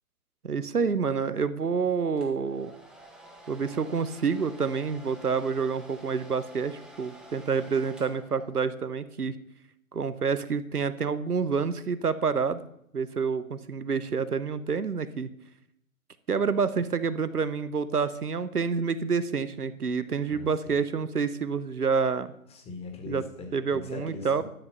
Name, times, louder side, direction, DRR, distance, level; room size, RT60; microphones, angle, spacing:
voice 1, 0.4-2.7 3.5-9.3 9.9-12.6 12.9-15.3 16.3-22.3 23.1-23.2 23.5-24.4, right 5 dB, 90° right, 14 dB, 0.8 m, -28 dB
Domestic sounds home sounds, 2.2-8.9, right 1 dB, ahead, 1.2 m, -50 dB
voice 2, 20.3-20.8 22.5-24.4, left 3 dB, 15° left, 3 dB, 1.8 m, -41 dB
12.0 x 5.3 x 6.7 m, 0.74 s
figure-of-eight pair, 120°, 44 cm